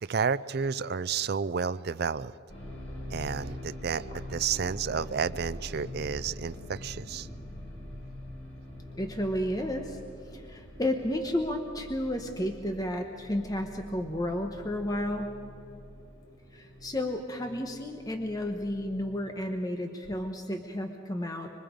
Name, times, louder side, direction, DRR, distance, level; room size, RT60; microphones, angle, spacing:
voice 1, 0.0-2.3 3.1-7.3, right 6 dB, 50° right, 14 dB, 0.4 m, -31 dB
sound 1, 2.5-19.5, left 1 dB, 75° left, 5.3 m, -44 dB
Thunder, 3.9-16.6 17.0-17.8 18.1-19.0, equal, 35° left, 2.2 m, -54 dB
voice 2, 9.0-10.0 10.3-15.4 16.5-21.5, left 1 dB, 20° left, 4 dB, 1.1 m, -32 dB
25.5 x 24.0 x 5.2 m, 2.7 s
head